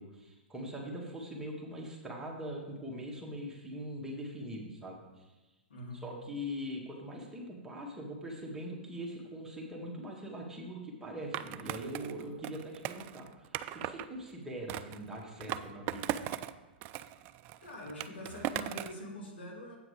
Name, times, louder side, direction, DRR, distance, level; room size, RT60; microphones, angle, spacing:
voice 1, 0.0-5.4 5.9-16.2, equal, 10° right, -2 dB, 1.8 m, -42 dB
voice 2, 5.7-6.0 17.6-19.8, left 1 dB, 75° left, -1 dB, 2.4 m, -44 dB
Skateboard, 11.3-14.1 14.7-16.5 16.8-19.0, right 13 dB, 35° right, 0.3 m, -38 dB
8.2 x 5.8 x 4.9 m, 1.1 s
hypercardioid pair, 110°, 6 cm